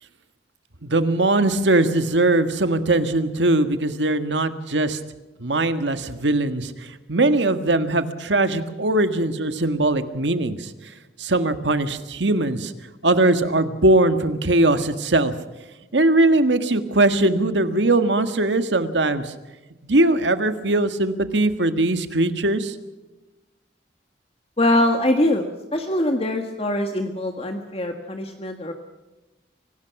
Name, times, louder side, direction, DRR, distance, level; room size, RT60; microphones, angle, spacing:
voice 1, 0.8-5.0 5.4-10.7 11.2-12.7 13.0-15.3 15.9-19.3 19.8-22.7, right 2 dB, 90° right, 10 dB, 1.7 m, -20 dB
voice 2, 24.6-28.7, left 1 dB, 35° left, 5 dB, 1.6 m, -23 dB
25.0 x 18.5 x 6.0 m, 1.1 s
head